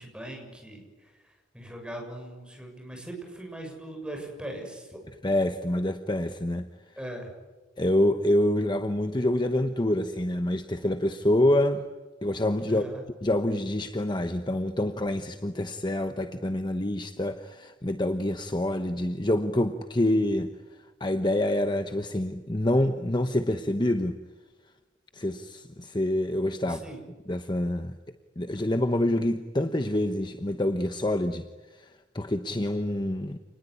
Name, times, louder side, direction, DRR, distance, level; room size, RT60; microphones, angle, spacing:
voice 1, 0.0-5.0 7.0-7.3 12.7-13.0 26.6-27.0, right 1 dB, 5° right, 2 dB, 7.1 m, -40 dB
voice 2, 5.2-6.7 7.8-11.9 12.2-12.9 13.2-20.5 21.0-24.2 25.1-26.8 27.3-28.0 28.4-33.4, left 1 dB, 25° left, 8 dB, 1.0 m, -26 dB
29.0 x 20.0 x 9.9 m, 1.3 s
head